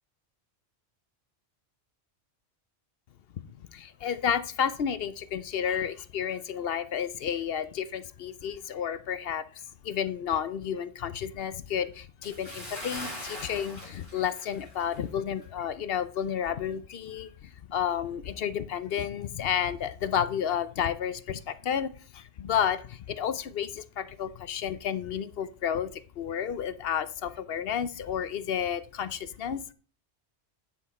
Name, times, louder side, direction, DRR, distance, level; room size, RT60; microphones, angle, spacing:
voice 1, 3.3-29.7, left 8 dB, 65° left, 14 dB, 0.9 m, -31 dB
Bathtub (filling or washing) / Splash splatter, 12.2-15.1 15.4-15.6 16.1-16.2, left 1 dB, 50° left, 3.4 m, -41 dB
10.0 x 6.1 x 4.2 m, 0.40 s
omnidirectional pair, 1.1 m